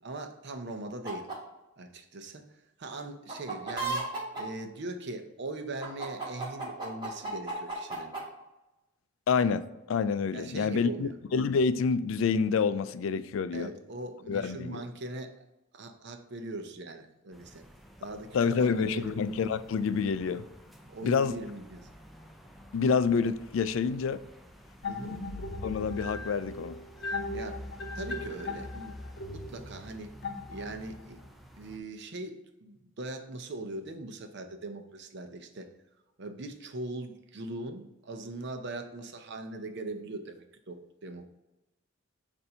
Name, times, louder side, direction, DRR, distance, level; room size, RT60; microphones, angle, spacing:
voice 1, 0.0-1.3 1.8-2.4 2.8-4.1 4.4-8.1 10.3-11.2 13.5-15.3 15.7-17.6 18.0-19.2 20.9-21.9 24.9-25.2 27.3-27.6 27.9-30.1 30.5-31.2 31.6-35.7 36.2-41.3, right 2 dB, 60° right, 0.7 m, -40 dB
sound 1, 1.0-1.3 3.3-4.4 5.8-8.2, right 3 dB, 25° right, 1.7 m, -34 dB
voice 2, 9.3-13.7 14.3-14.8 18.3-20.5 21.0-21.4 22.7-24.2 25.6-26.8, left 5 dB, 70° left, 0.3 m, -28 dB
sound 2, 17.3-31.8, left 1 dB, ahead, 0.4 m, -48 dB
sound 3, 24.8-31.0, left 3 dB, 55° left, 0.8 m, -38 dB
6.9 x 2.6 x 5.4 m
head